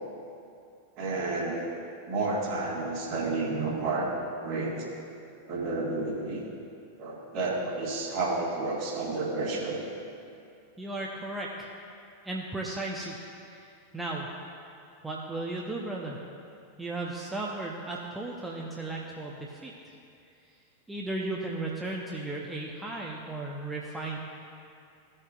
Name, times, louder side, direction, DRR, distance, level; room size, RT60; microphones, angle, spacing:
voice 1, 1.0-1.7 2.1-4.1 4.4-4.9 5.5-6.4 7.0-9.8, right 3 dB, 45° right, -4 dB, 2.1 m, -30 dB
voice 2, 10.8-11.7 12.2-13.2 13.5-14.3 15.0-16.2 16.8-19.7 20.9-24.2, right 2 dB, 10° right, -2 dB, 0.8 m, -35 dB
16.0 x 6.5 x 2.5 m, 2.6 s
figure-of-eight pair, 90°, 0 cm